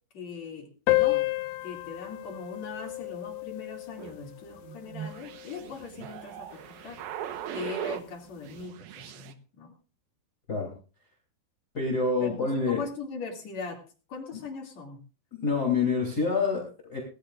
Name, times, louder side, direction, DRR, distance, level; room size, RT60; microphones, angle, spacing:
voice 1, 0.1-1.2 1.6-7.0 7.5-9.7 12.2-13.8 14.1-15.0, left 4 dB, 50° left, 2 dB, 3.5 m, -40 dB
sound 1, 0.9-5.8, left 20 dB, 85° left, 2.7 m, -31 dB
sound 2, 4.0-8.1 8.4-9.3, right 10 dB, 75° right, 2.8 m, -39 dB
voice 2, 11.7-12.8 15.4-17.0, left 4 dB, 25° left, -1 dB, 3.4 m, -27 dB
20.0 x 14.5 x 2.5 m, 0.37 s
omnidirectional pair, 4.5 m